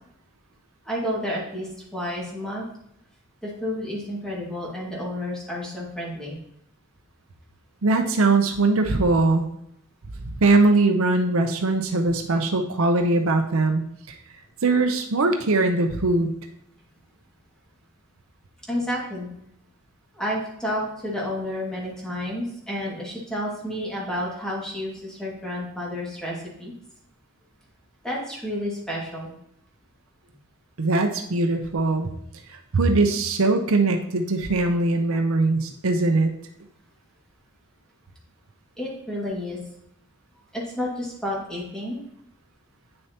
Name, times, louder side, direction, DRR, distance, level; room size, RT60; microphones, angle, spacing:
voice 1, 0.8-2.6 3.4-6.4 18.7-19.3 20.2-26.7 28.0-29.3 38.8-39.6 40.5-42.0, left 1 dB, 5° left, -5 dB, 2.1 m, -30 dB
voice 2, 7.8-9.4 10.4-14.2 14.6-16.3 30.8-32.1 32.7-36.3, right 3 dB, 70° right, 5 dB, 0.7 m, -21 dB
9.0 x 6.5 x 2.9 m, 0.74 s
head